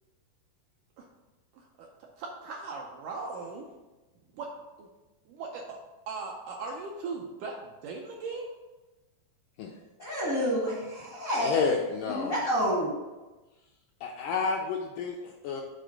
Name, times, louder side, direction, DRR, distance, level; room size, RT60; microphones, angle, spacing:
voice 1, 1.5-1.9 2.2-3.7 4.3-4.5 4.8-4.9 5.3-5.8 6.1-8.5, right 4 dB, 75° right, 0 dB, 1.9 m, -38 dB
voice 2, 10.0-11.5 12.1-12.9, equal, 55° left, -6 dB, 0.9 m, -29 dB
voice 3, 11.4-12.4 14.0-15.6, left 5 dB, 80° left, 0 dB, 1.9 m, -30 dB
6.9 x 4.2 x 6.3 m, 1.1 s
omnidirectional pair, 4.3 m